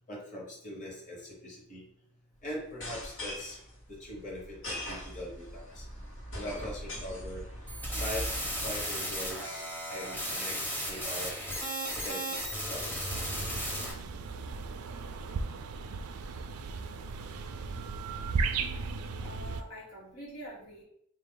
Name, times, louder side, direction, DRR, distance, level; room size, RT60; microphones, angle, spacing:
voice 1, 0.1-1.8 2.4-3.6 3.9-5.8 6.3-7.4 8.0-8.3 8.6-10.6 10.8-11.4 12.0-12.2 12.6-13.1, left 1 dB, 35° left, -4 dB, 1.1 m, -41 dB
sound 1, 2.7-8.8, equal, 60° left, 1.1 m, -41 dB
sound 2, 7.7-13.9, equal, 10° left, 0.7 m, -35 dB
sound 3, 13.1-19.6, right 4 dB, 75° right, 0.4 m, -36 dB
voice 2, 19.2-20.8, right 1 dB, 85° left, -3 dB, 1.3 m, -45 dB
4.1 x 2.4 x 3.7 m, 0.71 s
head